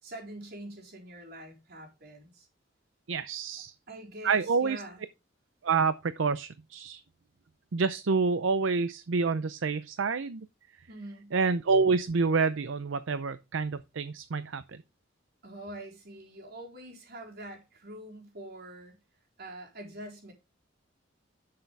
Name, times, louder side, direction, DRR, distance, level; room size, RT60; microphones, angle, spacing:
voice 1, 0.0-2.5 3.9-5.0 10.9-11.3 15.4-19.0 19.4-20.3, right 1 dB, 55° right, 4.0 m, -44 dB
voice 2, 3.1-3.7 4.2-4.8 5.6-7.0 7.7-10.5 11.3-14.8, right 4 dB, 75° right, 0.6 m, -28 dB
11.0 x 6.7 x 3.4 m
head